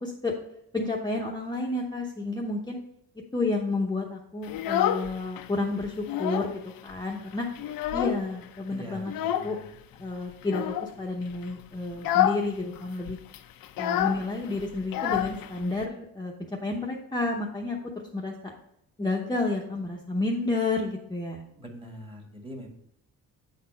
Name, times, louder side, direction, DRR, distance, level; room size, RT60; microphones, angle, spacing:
voice 1, 0.0-0.3 0.7-2.8 3.3-6.5 6.8-7.5 7.9-9.1 9.4-9.6 10.0-13.2 13.8-18.5 19.0-21.4, left 2 dB, 10° left, -2 dB, 0.8 m, -30 dB
Child speech kid speaking, 4.4-5.5 5.8-6.6 6.9-7.0 7.3-8.4 9.1-9.6 10.4-10.9 11.3-11.5 11.9-12.5 12.7-12.8 13.1-15.9, left 11 dB, 80° left, 0.6 m, -28 dB
voice 2, 8.7-9.7 21.5-22.7, equal, 15° right, 1 dB, 1.7 m, -43 dB
8.5 x 4.2 x 5.5 m, 0.73 s
cardioid pair, 125°, 34 cm